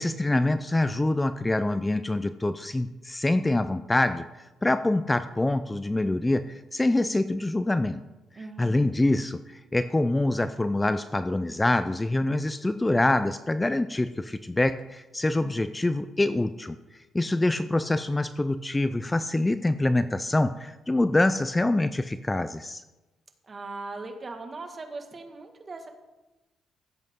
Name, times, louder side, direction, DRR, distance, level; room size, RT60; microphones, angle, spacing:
voice 1, 0.0-8.0 8.6-16.8 17.1-22.8, left 2 dB, 15° left, 12 dB, 0.5 m, -25 dB
voice 2, 8.4-8.9 23.4-25.9, right 3 dB, 35° right, 5 dB, 1.7 m, -39 dB
16.0 x 8.0 x 3.7 m, 1.1 s
cardioid pair, 90°, 0 cm